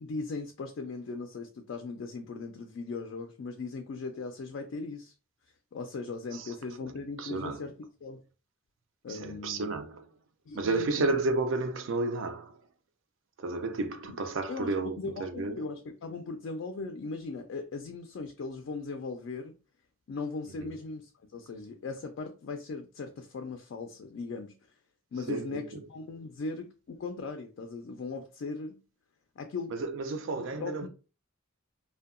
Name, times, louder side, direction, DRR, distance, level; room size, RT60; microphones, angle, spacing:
voice 1, 0.0-5.1 5.7-7.7 8.0-8.2 9.0-9.7 10.5-11.2 14.5-19.5 20.1-24.5 25.1-25.6 25.9-28.8 29.4-29.8 30.3-30.9, left 4 dB, 65° left, 0.3 m, -38 dB
voice 2, 6.3-6.9 7.2-7.7 9.1-10.1 10.5-12.6 13.4-15.6 20.6-20.8 25.3-25.6 29.7-30.9, right 3 dB, 65° right, 0.4 m, -32 dB
2.6 x 2.2 x 2.4 m
head